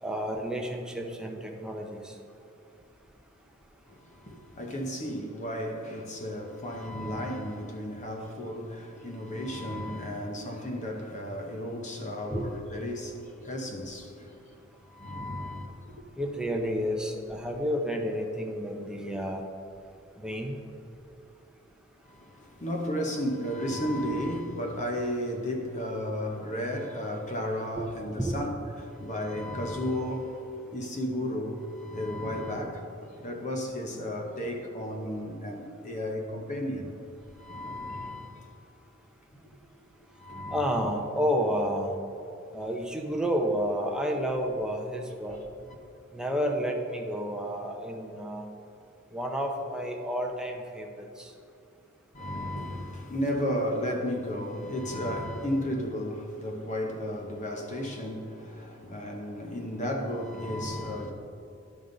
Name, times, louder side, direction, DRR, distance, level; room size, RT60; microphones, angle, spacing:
voice 1, 0.0-2.1 8.2-8.3 12.3-12.4 16.2-19.4 20.2-20.6 27.8-27.9 28.2-28.4 40.5-41.9 42.5-45.4 46.1-48.5 49.1-51.3, equal, 5° right, 0.7 m, -30 dB
voice 2, 3.9-14.4 14.8-16.0 22.0-28.5 28.8-37.0 37.4-38.5 40.1-40.7 52.1-61.1, equal, 35° left, 0.9 m, -33 dB
11.5 x 5.2 x 3.9 m
head